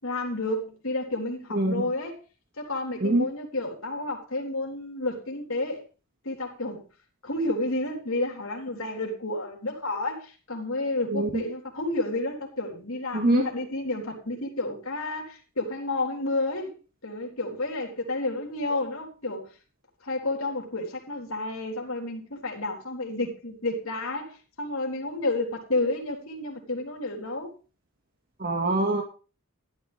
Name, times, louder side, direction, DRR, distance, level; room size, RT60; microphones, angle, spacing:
voice 1, 0.0-2.2 2.6-5.8 6.2-6.8 7.2-16.7 17.0-19.5 20.0-27.5, left 2 dB, 70° left, 3.9 m, -31 dB
voice 2, 1.5-1.9 3.0-3.3 11.1-11.4 13.1-13.5 28.4-29.0, right 2 dB, 45° right, 2.0 m, -24 dB
15.0 x 12.0 x 3.5 m
head